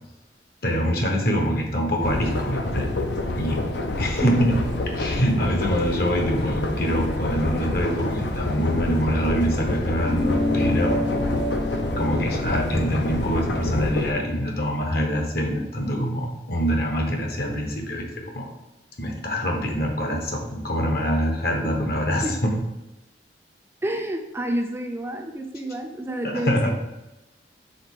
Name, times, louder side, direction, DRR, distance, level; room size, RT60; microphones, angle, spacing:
voice 1, 0.6-2.9 3.3-3.6 4.0-4.6 5.0-11.0 12.0-18.5 19.0-22.6 26.2-26.7, equal, 60° left, 1 dB, 1.1 m, -25 dB
sound 1, 2.0-14.1, left 2 dB, 80° left, 0.7 m, -28 dB
voice 2, 4.2-4.6 22.2-22.3 23.8-26.7, right 1 dB, 15° right, 3 dB, 0.4 m, -28 dB
sound 2, 10.0-14.8, left 2 dB, 35° left, 0.6 m, -29 dB
5.1 x 4.0 x 4.8 m, 0.98 s
head